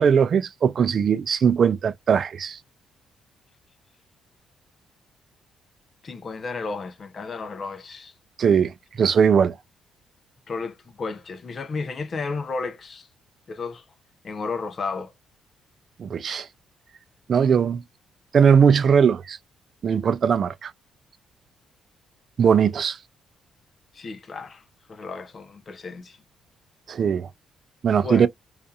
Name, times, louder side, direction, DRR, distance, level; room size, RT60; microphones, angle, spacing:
voice 1, 0.0-2.6 8.4-8.7 9.0-9.5 16.0-16.5 17.3-17.8 18.3-19.4 19.8-20.7 22.4-23.0 26.9-27.3 27.8-28.3, right 7 dB, 50° right, 0.3 m, -19 dB
voice 2, 6.0-8.1 10.5-13.1 13.5-13.8 14.2-15.1 23.9-24.6 24.9-26.2 28.0-28.3, left 4 dB, 40° left, 0.5 m, -33 dB
2.6 x 2.4 x 2.3 m
cardioid pair, 90°, 0 cm